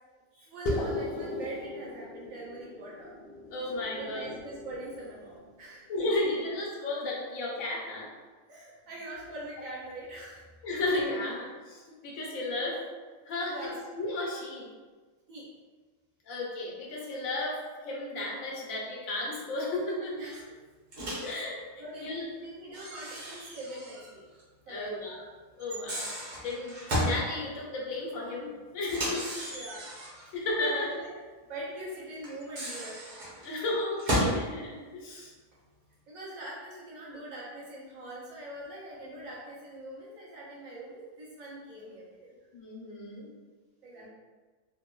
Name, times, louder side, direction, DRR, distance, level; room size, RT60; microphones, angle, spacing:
voice 1, 0.3-3.1 3.9-6.4 8.5-10.4 10.7-10.8 13.5-13.8 15.3-15.5 20.1-20.4 21.2-21.3 21.8-24.2 24.7-25.1 29.5-29.9 30.2-31.1 31.4-33.0 33.4-33.6 36.1-42.4 43.8-44.1, right 1 dB, 80° right, -6 dB, 1.2 m, -43 dB
sound 1, 0.7-5.4, left 1 dB, 60° left, 0.6 m, -37 dB
voice 2, 3.5-4.3 5.9-8.1 10.6-12.8 13.3-13.7 13.9-14.7 16.3-20.2 21.2-21.6 22.0-22.3 24.7-25.3 25.6-26.1 26.4-29.3 30.3-30.9 33.4-35.3 42.5-43.3 44.0-44.1, left 2 dB, 80° left, -3 dB, 1.1 m, -33 dB
Microwave oven, 20.9-21.4 22.7-24.1 24.4-24.5 25.6-27.2 28.8-30.3 32.2-34.4, equal, 40° right, 0.7 m, -33 dB
3.3 x 2.1 x 2.2 m, 1.4 s
omnidirectional pair, 1.4 m